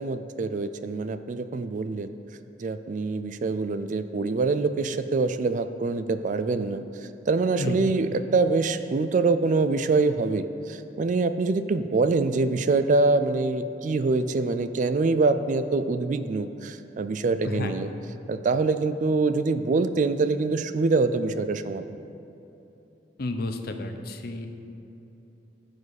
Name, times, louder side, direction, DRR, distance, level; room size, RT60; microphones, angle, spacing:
voice 1, 0.0-2.1 2.6-6.8 7.3-17.9 18.3-21.8, right 3 dB, 45° right, 11 dB, 0.3 m, -25 dB
voice 2, 23.2-24.5, left 2 dB, 55° left, 6 dB, 0.7 m, -31 dB
14.5 x 5.1 x 4.1 m, 3.0 s
head